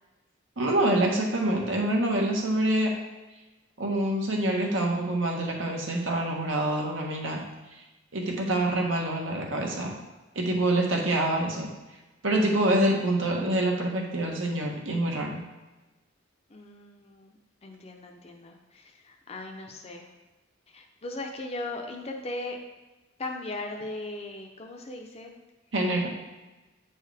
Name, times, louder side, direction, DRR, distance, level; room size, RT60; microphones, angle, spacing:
voice 1, 0.6-2.9 3.8-7.4 8.1-9.9 10.3-11.7 12.2-15.4 25.7-26.1, right 1 dB, 75° right, 0 dB, 1.3 m, -26 dB
voice 2, 16.5-20.1 20.7-22.6 23.2-25.3, left 2 dB, 35° left, 2 dB, 0.6 m, -38 dB
7.4 x 4.7 x 3.4 m, 1.1 s
head